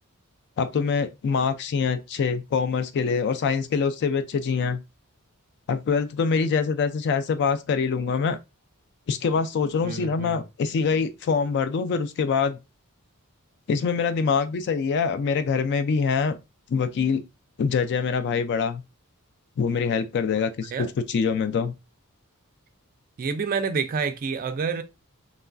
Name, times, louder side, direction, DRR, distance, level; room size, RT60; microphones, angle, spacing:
voice 1, 0.6-4.8 5.7-8.4 9.1-12.6 13.7-16.4 16.7-17.2 17.6-18.8 19.6-21.7, left 5 dB, 50° left, 0.3 m, -24 dB
voice 2, 9.8-10.4 20.7-20.9 23.2-24.8, right 5 dB, 40° right, 0.3 m, -28 dB
3.1 x 2.4 x 2.2 m
head